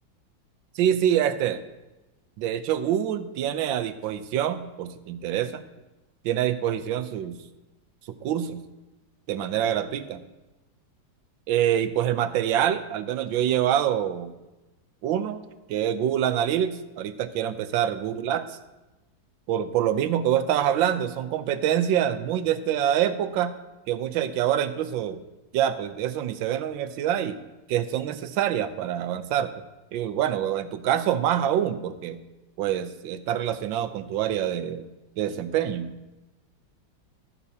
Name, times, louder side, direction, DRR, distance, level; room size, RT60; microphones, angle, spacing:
voice 1, 0.8-1.6 2.4-5.6 6.2-7.4 8.2-8.6 9.3-10.2 11.5-14.3 15.0-15.4 15.7-18.6 19.5-23.5 23.9-25.2 25.5-27.4 27.7-29.5 29.9-32.2 32.6-34.8 35.2-35.9, right 10 dB, 75° right, 11 dB, 1.3 m, -25 dB
13.5 x 11.0 x 2.8 m, 1.1 s
omnidirectional pair, 2.2 m